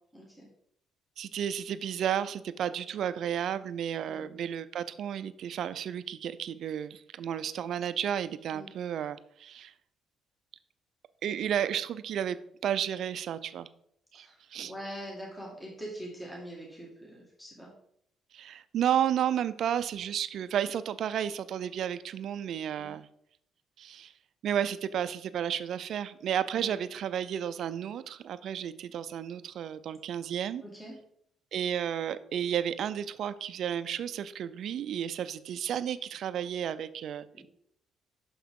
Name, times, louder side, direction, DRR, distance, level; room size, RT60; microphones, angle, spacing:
voice 1, 0.1-0.5 4.1-4.4 8.5-8.7 14.1-17.7 22.8-23.0 26.5-26.7 30.6-31.0 37.3-37.4, equal, 10° left, -4 dB, 1.9 m, -44 dB
voice 2, 1.2-9.7 11.2-13.7 14.1-14.7 18.3-23.1 23.8-24.1 24.4-30.6 31.5-37.4, right 9 dB, 65° right, 14 dB, 0.4 m, -32 dB
6.1 x 5.7 x 3.7 m, 0.70 s
cardioid pair, 95°, 0 cm